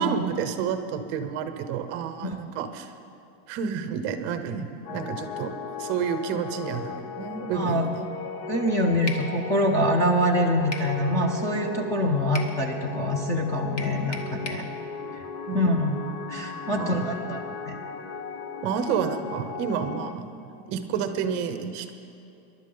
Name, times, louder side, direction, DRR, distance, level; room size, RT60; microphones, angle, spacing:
voice 1, 0.0-2.9 3.5-5.5 5.8-8.1 15.5-15.6 16.7-17.2 18.6-21.9, right 7 dB, 35° right, 9 dB, 0.8 m, -30 dB
sound 1, 4.9-20.1, left 5 dB, 80° left, 1.0 m, -37 dB
voice 2, 7.5-7.8 8.5-14.6 15.5-16.0 16.3-17.8, equal, 10° left, 2 dB, 0.6 m, -25 dB
sound 2, 9.1-9.3 10.7-10.9 12.3-12.6 13.8-14.7, left 3 dB, 30° left, 1.0 m, -35 dB
23.0 x 11.5 x 3.9 m, 2.8 s
supercardioid pair, 170°, 32 cm